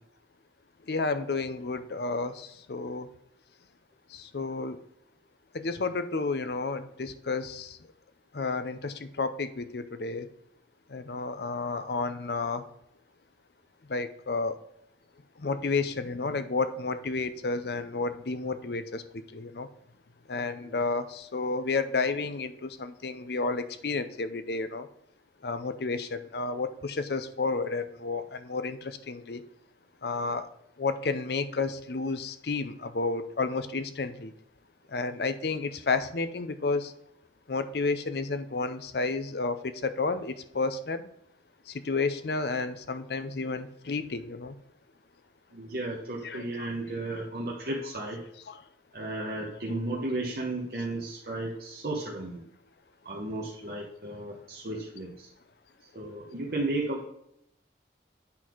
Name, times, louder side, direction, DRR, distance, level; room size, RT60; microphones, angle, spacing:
voice 1, 0.9-3.1 4.1-4.8 5.5-7.8 8.3-10.3 10.9-12.7 13.9-14.6 15.4-19.7 20.3-24.9 25.4-29.4 30.0-30.5 30.8-34.3 34.9-36.9 37.5-41.0 41.7-44.6 46.2-46.7 48.5-48.6, left 3 dB, 65° left, 11 dB, 0.6 m, -31 dB
voice 2, 45.5-48.2 48.9-52.4 53.0-55.3 55.9-57.1, right 2 dB, 55° right, -3 dB, 1.1 m, -34 dB
8.7 x 4.1 x 4.5 m, 0.79 s
head